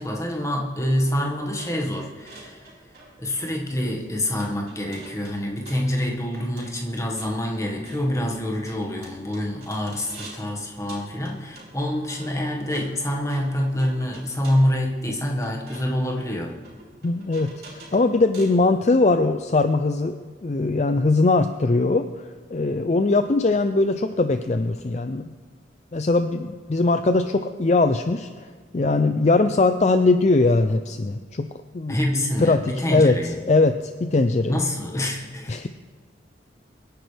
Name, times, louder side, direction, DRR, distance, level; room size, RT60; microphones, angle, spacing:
voice 1, 0.0-2.7 3.2-16.5 31.9-33.4 34.5-35.5, left 1 dB, 15° left, 0 dB, 1.6 m, -26 dB
sound 1, 1.6-10.5 10.9-18.6, right 2 dB, 55° right, 4.5 m, -47 dB
voice 2, 17.0-25.3 25.9-31.5 31.7-34.6 35.5-35.7, left 3 dB, 35° left, 9 dB, 0.4 m, -21 dB
24.0 x 10.5 x 3.4 m, 1.5 s
head